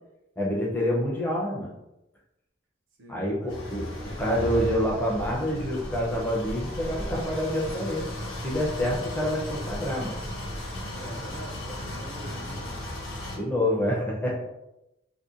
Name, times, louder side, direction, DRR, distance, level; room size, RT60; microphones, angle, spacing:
voice 1, 0.4-1.7 3.1-3.9 4.2-8.1 8.4-10.2 13.4-14.4, equal, 10° left, -3 dB, 0.5 m, -27 dB
voice 2, 3.0-3.6 10.9-12.8, right 1 dB, 65° right, 1 dB, 0.4 m, -44 dB
sound 1, 3.5-13.4, left 1 dB, 75° left, 1.0 m, -35 dB
2.7 x 2.1 x 2.4 m, 0.89 s
head